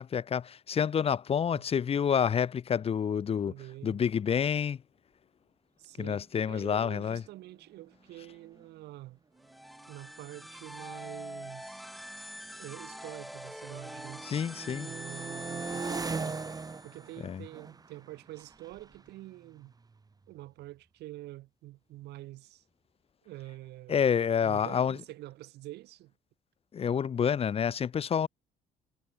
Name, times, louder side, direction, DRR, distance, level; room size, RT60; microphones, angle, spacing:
voice 1, 0.0-3.5 3.8-4.8 6.0-7.2 14.2-14.9 17.2-17.4 23.9-25.0 26.7-28.3, left 7 dB, 35° left, 0.8 m, -28 dB
voice 2, 3.4-4.0 5.8-9.2 9.9-11.8 12.6-14.3 14.8-16.4 16.8-19.7 20.3-22.6 23.2-24.1 24.4-26.1, right 17 dB, 80° right, 2.7 m, -46 dB
sound 1, 7.9-8.0 8.3-8.6 9.4-13.3 13.7-20.3, right 4 dB, 20° right, 2.4 m, -42 dB
sound 2, 9.4-17.1, equal, ahead, 0.7 m, -45 dB
cardioid pair, 110°, 17 cm